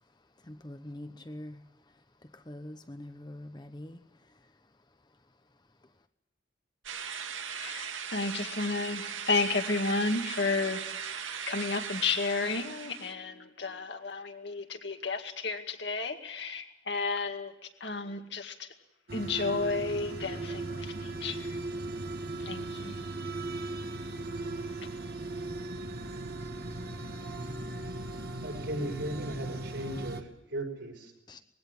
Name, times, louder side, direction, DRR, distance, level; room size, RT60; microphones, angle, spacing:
voice 1, 0.4-1.6 2.2-4.0 4.3-4.5 31.3-31.4, left 1 dB, 20° left, 8 dB, 0.9 m, -44 dB
sound 1, 6.8-13.1, right 7 dB, 90° right, 2.1 m, -38 dB
voice 2, 7.5-10.8 11.5-18.7 19.1-21.6 22.4-23.1, left 3 dB, 60° left, 5 dB, 2.1 m, -32 dB
sound 2, 19.1-30.2, right 2 dB, 55° right, 1.7 m, -38 dB
voice 3, 28.4-31.1, right 1 dB, 70° right, 1 dB, 5.7 m, -37 dB
20.5 x 16.5 x 9.8 m, 0.88 s
head